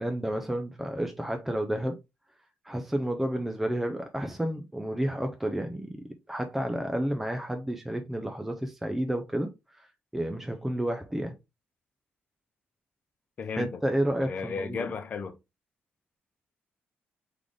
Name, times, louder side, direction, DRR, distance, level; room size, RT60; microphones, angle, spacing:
voice 1, 0.0-2.0 2.6-9.5 9.8-9.9 10.1-11.4 13.6-14.9, right 1 dB, 5° right, 0.5 m, -31 dB
voice 2, 13.4-13.8 14.3-15.4, left 5 dB, 40° left, 0.7 m, -34 dB
3.8 x 3.4 x 3.5 m
cardioid pair, 145°, 4 cm